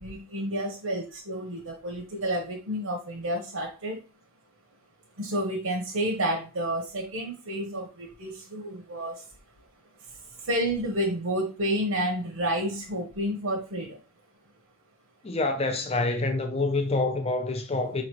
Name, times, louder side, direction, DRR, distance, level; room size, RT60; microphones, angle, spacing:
voice 1, 0.0-4.0 5.2-9.2 10.4-14.0, right 1 dB, 90° right, 1.1 m, -30 dB
voice 2, 15.2-18.0, left 2 dB, 30° left, 0.6 m, -27 dB
4.9 x 3.1 x 3.0 m
head